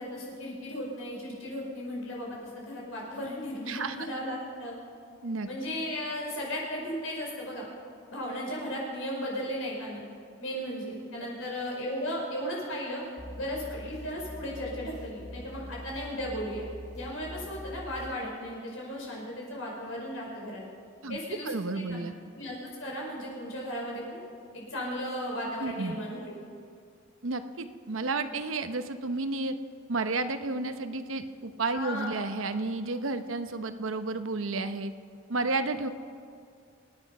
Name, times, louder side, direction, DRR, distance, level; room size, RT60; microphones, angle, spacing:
voice 1, 0.0-4.8 5.5-7.7 8.1-10.0 10.4-13.0 13.4-16.7 16.9-20.6 21.1-21.5 21.9-22.0 22.3-24.2 24.5-26.4 31.7-32.2, equal, 85° left, -3 dB, 5.2 m, -35 dB
voice 2, 3.7-4.1 5.2-5.5 21.0-21.2 21.4-22.1 25.6-26.0 27.2-29.5 29.9-34.9 35.3-35.9, right 3 dB, 90° right, 9 dB, 0.9 m, -31 dB
sound 1, 13.2-18.2, left 1 dB, 20° left, 4.2 m, -44 dB
26.0 x 9.8 x 5.5 m, 2.3 s
head